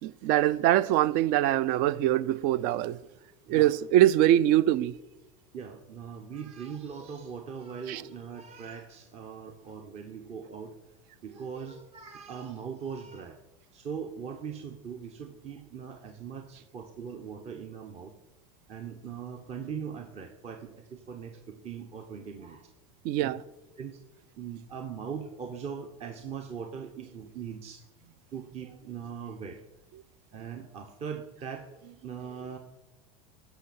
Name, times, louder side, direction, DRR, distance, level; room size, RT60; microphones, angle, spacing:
voice 1, 0.0-3.0 3.5-4.9 7.9-8.0 23.0-23.4, right 13 dB, 50° right, 0.4 m, -23 dB
voice 2, 5.5-10.8 11.2-13.4 13.7-18.1 18.7-22.7 23.2-23.3 23.8-24.0 24.3-29.6 30.3-32.6, right 7 dB, 35° right, 0.9 m, -40 dB
15.5 x 5.9 x 4.2 m
hypercardioid pair, 105°, 18 cm